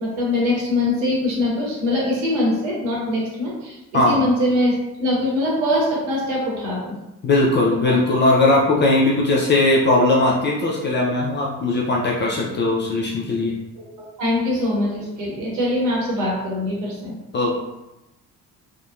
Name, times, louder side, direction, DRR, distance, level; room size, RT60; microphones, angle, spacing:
voice 1, 0.0-4.7 5.0-6.9 14.2-17.1, left 1 dB, 65° right, -4 dB, 1.0 m, -22 dB
voice 2, 7.2-13.5 17.3-17.5, left 2 dB, 25° left, -3 dB, 0.3 m, -19 dB
2.7 x 2.0 x 2.3 m, 0.97 s
figure-of-eight pair, 40°, 48 cm